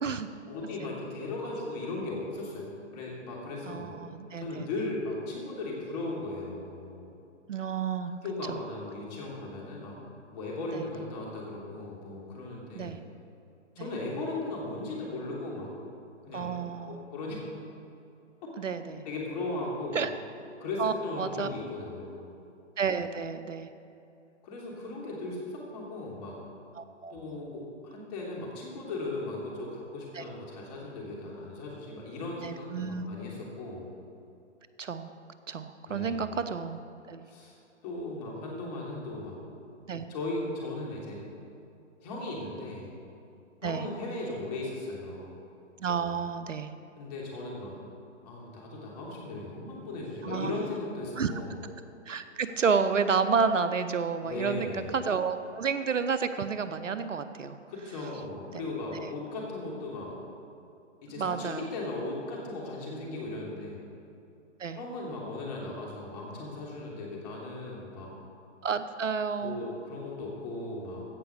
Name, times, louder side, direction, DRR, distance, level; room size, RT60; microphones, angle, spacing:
voice 1, 0.5-4.0 4.4-7.1 8.2-10.0 10.3-13.0 13.7-15.7 16.3-17.4 18.4-18.7 19.0-20.0 20.6-22.3 24.4-26.3 27.1-33.9 35.9-36.4 37.3-37.5 37.8-39.4 40.1-41.2 42.0-42.9 43.6-45.4 47.0-47.8 48.2-51.5 54.2-55.0 57.7-60.2 61.0-63.8 64.7-68.1 69.4-71.1, left 2 dB, 35° left, -3 dB, 3.1 m, -37 dB
voice 2, 3.7-4.7 7.5-8.1 8.5-8.6 10.7-10.9 12.7-13.0 13.8-13.9 16.3-17.0 18.6-19.0 19.9-20.1 20.8-21.5 22.8-23.7 26.7-27.4 30.1-30.2 32.4-33.1 34.8-35.1 35.5-36.8 37.1-37.3 39.9-40.1 43.6-43.9 45.8-46.7 50.2-50.5 51.2-51.3 52.1-57.6 58.5-58.6 58.9-59.1 61.2-61.7 64.6-64.8 68.6-69.6, right 5 dB, 80° right, 11 dB, 0.9 m, -31 dB
15.5 x 5.8 x 6.5 m, 2.8 s
figure-of-eight pair, 135°, 37 cm